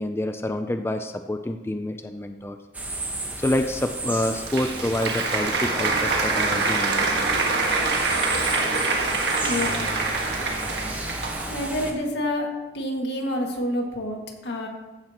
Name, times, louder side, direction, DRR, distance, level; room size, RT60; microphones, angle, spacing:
voice 1, 0.0-2.6 3.4-7.3, left 1 dB, 15° left, 7 dB, 0.4 m, -27 dB
sound 1, 2.7-11.9, right 1 dB, 10° right, 1.2 m, -34 dB
Applause, 4.1-11.7, right 3 dB, 80° right, 1.6 m, -25 dB
voice 2, 9.4-9.9 11.5-12.5 12.7-14.7, left 1 dB, 80° left, 1 dB, 1.9 m, -28 dB
15.0 x 9.9 x 3.0 m, 1.2 s
head